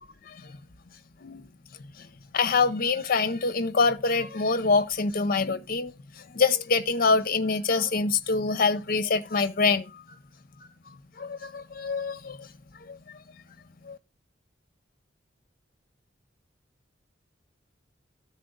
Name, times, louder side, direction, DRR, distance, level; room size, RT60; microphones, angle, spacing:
voice 1, 2.3-5.9 6.3-10.0 11.2-12.5 12.7-13.2 13.8-14.0, left 4 dB, 50° left, 0.7 m, -25 dB
12.5 x 4.2 x 3.9 m
head